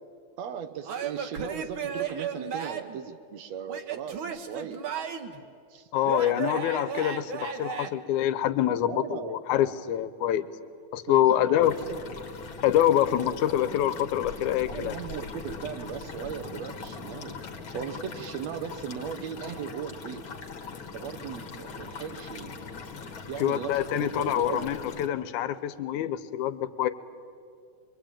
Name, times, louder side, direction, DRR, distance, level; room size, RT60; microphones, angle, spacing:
voice 1, 0.4-4.9 5.7-5.9 8.9-9.3 11.1-12.0 14.7-17.4 17.7-20.2 20.9-22.9 23.3-24.7, right 8 dB, 70° right, 10 dB, 2.0 m, -38 dB
Male speech man speaking / Yell / Laughter, 0.8-3.0 3.7-5.4 6.0-7.9, right 7 dB, 55° right, 1.7 m, -34 dB
voice 2, 5.9-10.5 10.9-11.7 12.6-15.0 23.4-26.9, left 11 dB, 80° left, 13 dB, 2.3 m, -25 dB
reef-emptying-water-sea-in-background-cobblestones, 11.6-25.1, left 4 dB, 45° left, 2.3 m, -41 dB
24.5 x 23.0 x 8.9 m, 2.4 s
omnidirectional pair, 3.4 m